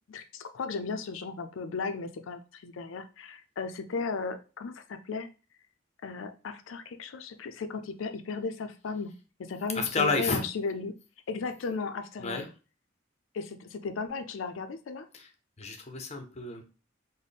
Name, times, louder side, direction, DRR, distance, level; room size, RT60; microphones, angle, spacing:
voice 1, 0.1-5.3 6.0-9.1 9.4-10.9 11.3-12.4 13.3-15.1, left 4 dB, 85° left, 9 dB, 0.4 m, -35 dB
voice 2, 9.7-10.4 12.2-12.5 15.1-15.3 15.6-16.6, left 3 dB, 35° left, 5 dB, 0.6 m, -30 dB
4.0 x 2.1 x 3.3 m, 0.34 s
head